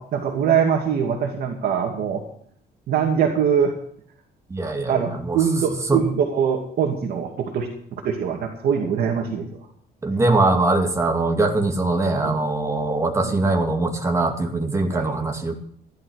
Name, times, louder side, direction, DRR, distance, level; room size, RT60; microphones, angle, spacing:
voice 1, 0.0-2.2 2.9-3.7 4.9-9.5 12.2-12.4 13.2-13.4 14.9-15.1, right 7 dB, 65° right, 2 dB, 2.5 m, -23 dB
voice 2, 4.5-5.4 5.9-6.0 10.0-15.6, right 2 dB, 15° right, 3 dB, 2.4 m, -22 dB
15.0 x 12.0 x 6.5 m, 0.64 s
cardioid pair, 150°, 18 cm